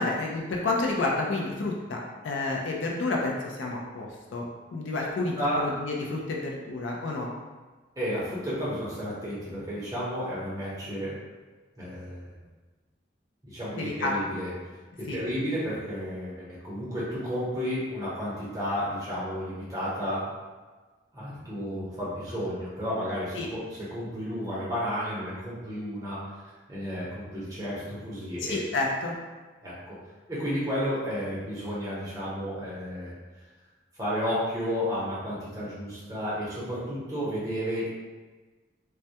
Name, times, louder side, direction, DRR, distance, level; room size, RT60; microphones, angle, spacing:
voice 1, 0.0-4.5 4.7-7.3 13.7-14.2 15.1-15.2 23.4-23.5 28.5-29.2, left 2 dB, 85° left, -1 dB, 0.4 m, -30 dB
voice 2, 5.4-5.7 8.0-11.2 11.8-12.3 13.4-14.5 15.0-20.3 21.1-26.2 26.7-28.6 29.6-30.0 30.3-33.1 34.0-37.9, equal, 20° right, -9 dB, 0.7 m, -32 dB
2.2 x 2.1 x 2.7 m, 1.3 s
head